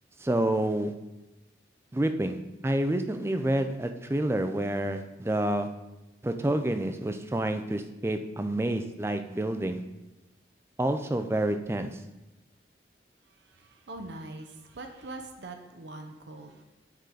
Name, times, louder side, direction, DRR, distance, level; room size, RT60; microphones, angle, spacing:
voice 1, 0.2-0.9 1.9-2.4 2.6-5.7 6.2-9.8 10.8-12.0, right 1 dB, 15° right, 8 dB, 0.4 m, -28 dB
voice 2, 13.5-16.6, right 2 dB, 80° right, 4 dB, 0.7 m, -43 dB
9.1 x 4.9 x 3.8 m, 0.99 s
head